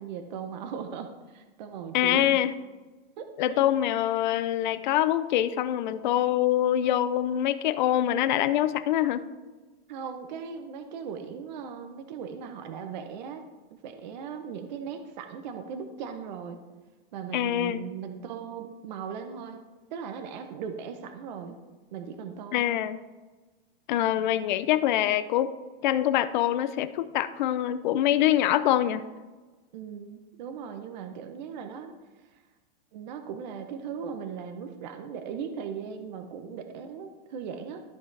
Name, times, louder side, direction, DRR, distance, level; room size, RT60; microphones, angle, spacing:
voice 1, 0.0-2.4 3.2-3.6 9.9-13.4 13.8-16.6 17.1-19.6 19.9-21.6 21.9-22.8 29.7-31.9 32.3-32.4 32.9-37.8, right 6 dB, 45° right, 7 dB, 0.7 m, -38 dB
voice 2, 1.9-2.5 3.4-9.2 17.3-17.8 22.5-23.0 23.9-25.5 25.8-29.0, left 12 dB, 50° left, 13 dB, 0.5 m, -24 dB
13.0 x 5.5 x 3.3 m, 1.3 s
supercardioid pair, 170°, 30 cm